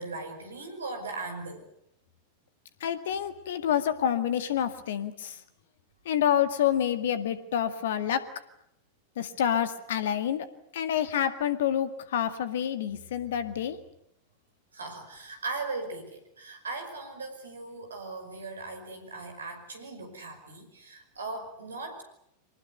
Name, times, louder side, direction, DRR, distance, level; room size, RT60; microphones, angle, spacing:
voice 1, 0.0-1.7 14.7-22.0, right 3 dB, 70° right, 6 dB, 5.6 m, -38 dB
voice 2, 2.8-5.4 6.1-8.2 9.2-10.5 10.7-13.8, left 9 dB, 60° left, 11 dB, 2.0 m, -28 dB
24.0 x 19.5 x 9.4 m, 0.75 s
figure-of-eight pair, 90°, 0 cm